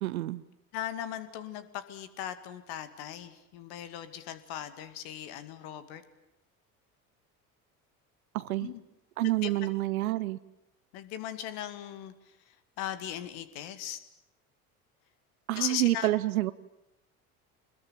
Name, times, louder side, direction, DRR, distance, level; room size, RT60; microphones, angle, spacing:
voice 1, 0.0-0.4 8.3-8.7 9.2-10.4 15.5-16.5, right 16 dB, 70° right, 15 dB, 0.8 m, -28 dB
voice 2, 0.7-6.0 8.6-8.8 9.4-9.5 10.9-12.1 12.8-14.0 15.6-16.1, left 11 dB, 60° left, 12 dB, 2.3 m, -38 dB
26.0 x 21.0 x 8.9 m, 0.90 s
figure-of-eight pair, 65°, 43 cm